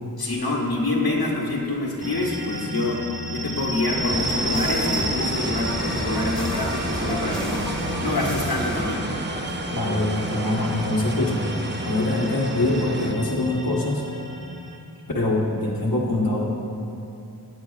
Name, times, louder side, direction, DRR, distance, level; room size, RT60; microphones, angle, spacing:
voice 1, 0.2-9.1 9.5-9.6, left 2 dB, 85° left, -3 dB, 1.4 m, -26 dB
sound 1, 2.0-14.8, equal, 30° left, 1.6 m, -32 dB
sound 2, 3.9-8.9, equal, 5° left, 1.8 m, -31 dB
sound 3, 4.1-13.1, right 2 dB, 30° right, 0.6 m, -33 dB
voice 2, 9.7-11.5 11.8-14.0 15.1-16.5, left 2 dB, 65° left, -4 dB, 1.3 m, -23 dB
16.5 x 8.9 x 2.4 m, 2.8 s
wide cardioid pair, 60°, 37 cm